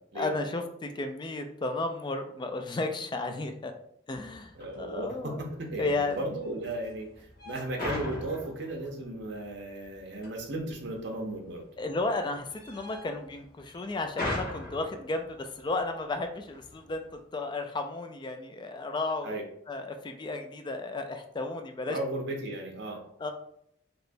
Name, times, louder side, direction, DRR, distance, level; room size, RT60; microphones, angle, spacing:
voice 1, 0.2-3.7 4.1-4.5 4.8-5.4 5.8-6.2 11.8-19.3 19.7-22.0 23.2-23.3, left 2 dB, 25° left, 6 dB, 0.3 m, -33 dB
sound 1, 4.1-17.2, left 1 dB, 55° left, 1.1 m, -42 dB
voice 2, 4.5-11.6 19.2-19.4 21.9-23.0, right 1 dB, 65° right, 2 dB, 0.6 m, -35 dB
3.2 x 2.9 x 2.5 m, 0.70 s
head